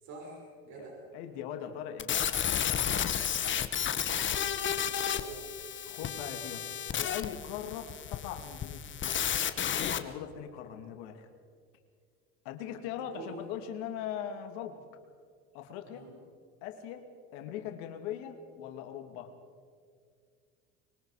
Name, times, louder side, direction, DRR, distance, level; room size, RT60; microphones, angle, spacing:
voice 1, 0.0-1.0 3.2-5.5 7.7-7.9 13.0-13.4 15.9-16.1, right 3 dB, 60° right, -2 dB, 6.3 m, -48 dB
voice 2, 1.1-2.3 5.9-8.8 9.6-11.3 12.4-14.8 15.5-16.1 16.6-19.3, left 9 dB, 80° left, 6 dB, 2.4 m, -40 dB
sound 1, 2.0-10.0, left 9 dB, 35° left, 1.4 m, -32 dB
25.0 x 22.5 x 4.9 m, 2.2 s
supercardioid pair, 95°, 31 cm